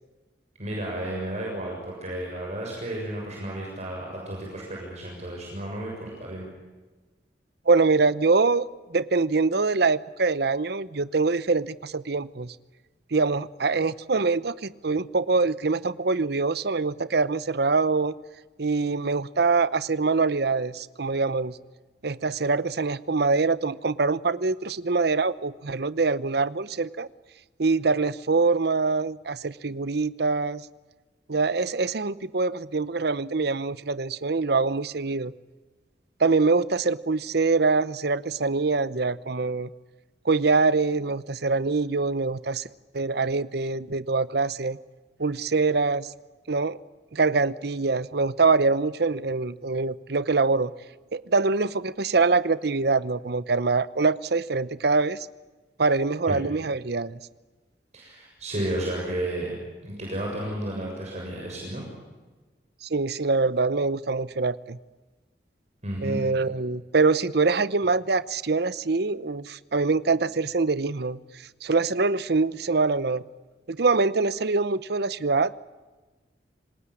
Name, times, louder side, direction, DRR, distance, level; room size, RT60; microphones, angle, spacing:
voice 1, 0.6-6.5 56.3-56.4 57.9-59.5 59.8-61.9 65.8-66.5, right 1 dB, 40° right, -2 dB, 7.0 m, -32 dB
voice 2, 7.7-12.5 13.1-18.1 18.6-21.5 22.0-27.1 27.6-30.7 31.3-35.3 36.2-39.7 40.2-42.6 42.9-44.8 45.2-46.1 46.5-46.8 47.1-50.7 51.1-55.3 55.8-57.2 62.9-64.8 66.0-71.2 71.6-73.2 73.7-75.5, right 4 dB, 65° right, 17 dB, 0.8 m, -24 dB
27.0 x 19.5 x 10.0 m, 1.2 s
head